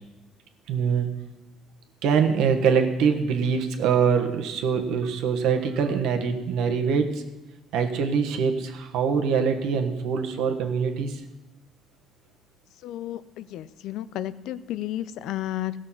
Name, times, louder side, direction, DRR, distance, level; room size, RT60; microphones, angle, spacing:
voice 1, 0.7-1.1 2.0-7.2 7.7-11.2, right 6 dB, 75° right, 5 dB, 1.3 m, -24 dB
voice 2, 12.8-15.7, left 13 dB, 75° left, 15 dB, 0.5 m, -32 dB
16.5 x 6.4 x 5.7 m, 1.0 s
cardioid pair, 110°, 0 cm